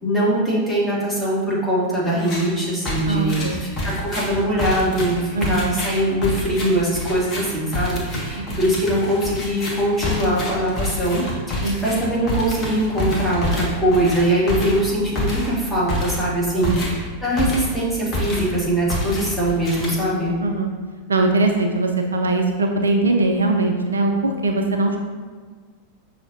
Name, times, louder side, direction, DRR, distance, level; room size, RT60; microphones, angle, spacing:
voice 1, 0.0-20.3, right 1 dB, 10° left, -7 dB, 1.4 m, -22 dB
sound 1, 2.2-2.5 2.9-17.8 18.1-18.6 18.9-20.3, left 1 dB, 30° left, 1.0 m, -27 dB
voice 2, 3.1-3.6 5.3-5.8 8.4-8.5 11.6-11.8 16.6-16.8 20.4-20.7 21.1-25.0, right 2 dB, 75° right, 3 dB, 0.3 m, -21 dB
5.8 x 2.8 x 2.6 m, 1.5 s
figure-of-eight pair, 90°, 0 cm